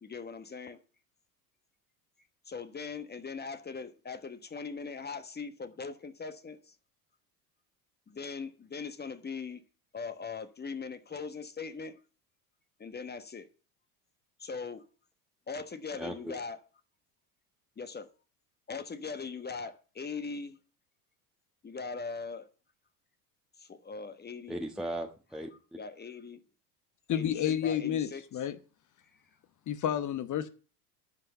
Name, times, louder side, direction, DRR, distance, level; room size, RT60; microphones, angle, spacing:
voice 1, 0.0-0.8 2.5-6.7 8.1-9.6 9.9-12.0 12.8-13.5 14.4-14.8 15.5-16.6 17.8-18.1 18.7-20.6 21.6-22.5 23.6-24.6 25.7-26.4 27.1-27.3 27.6-28.2, left 5 dB, 20° left, 1.3 m, -40 dB
voice 2, 16.0-16.3 24.5-25.8, right 1 dB, ahead, 1.3 m, -38 dB
voice 3, 27.1-28.5 29.7-30.5, left 9 dB, 40° left, 1.1 m, -30 dB
11.0 x 5.8 x 7.8 m
hypercardioid pair, 80°, 46 cm